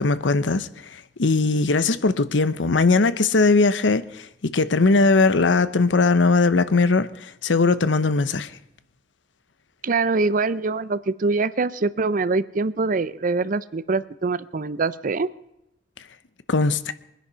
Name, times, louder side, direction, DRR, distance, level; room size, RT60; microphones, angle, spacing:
voice 1, 0.0-8.5 16.5-16.9, left 3 dB, 85° left, 0.8 m, -20 dB
voice 2, 9.8-15.3, right 3 dB, 45° right, 0.6 m, -24 dB
23.0 x 10.5 x 5.6 m
head